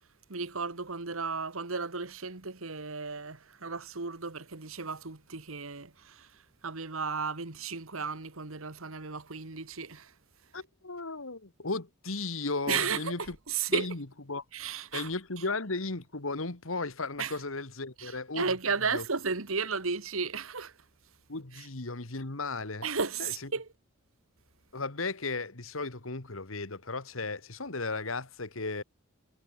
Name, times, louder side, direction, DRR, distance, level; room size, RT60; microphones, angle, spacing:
voice 1, 0.3-10.1 12.7-14.0 14.5-15.1 17.2-17.4 18.0-20.7 21.5-21.7 22.8-23.7, right 5 dB, 75° right, 1.9 m, -34 dB
voice 2, 10.5-13.4 13.7-14.4 14.9-18.5 18.9-19.0 21.3-22.9 23.2-23.3 24.7-28.8, left 3 dB, 70° left, 2.1 m, -35 dB
head